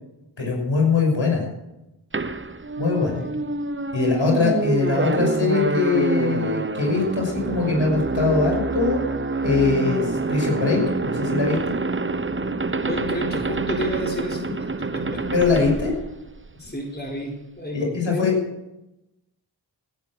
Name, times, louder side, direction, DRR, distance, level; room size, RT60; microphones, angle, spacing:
voice 1, 0.4-1.4 2.8-3.2 3.9-9.1 9.4-11.8 15.3-15.9 17.7-18.3, left 4 dB, 70° left, 0 dB, 6.0 m, -22 dB
sound 1, 2.1-16.7, right 3 dB, 25° right, 0.9 m, -26 dB
voice 2, 3.0-3.3 4.0-4.4 12.8-15.3 16.6-18.5, equal, 20° left, 0 dB, 4.3 m, -31 dB
17.5 x 10.5 x 6.1 m, 0.93 s
cardioid pair, 40°, 46 cm